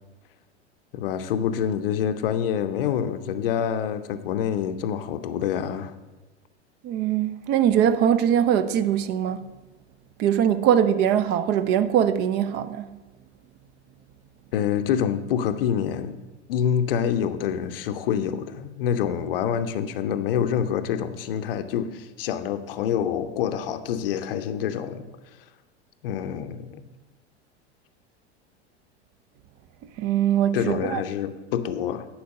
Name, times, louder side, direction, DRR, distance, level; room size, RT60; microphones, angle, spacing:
voice 1, 0.9-5.9 14.5-16.2 16.5-25.1 26.0-26.8 30.5-32.1, left 8 dB, 55° left, 0.6 m, -26 dB
voice 2, 6.8-9.5 10.2-12.9 30.0-31.0, right 9 dB, 30° right, 0.5 m, -22 dB
10.5 x 4.6 x 6.4 m
figure-of-eight pair, 80°, 35 cm